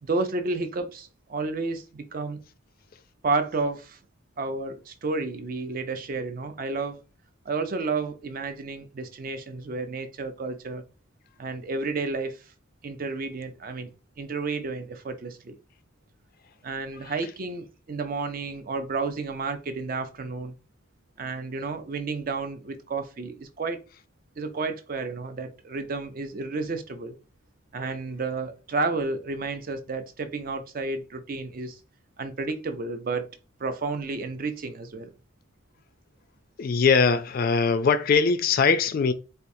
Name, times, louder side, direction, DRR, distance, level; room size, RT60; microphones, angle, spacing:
voice 1, 0.0-2.4 3.2-4.0 4.4-7.0 7.5-10.8 11.4-12.4 12.8-13.9 14.2-15.6 16.6-20.5 21.2-23.8 24.4-27.2 27.7-31.8 32.2-33.3 33.6-35.1, right 3 dB, 45° right, 0.4 m, -31 dB
voice 2, 36.6-39.1, left 5 dB, 45° left, 0.3 m, -21 dB
4.3 x 2.4 x 2.6 m
head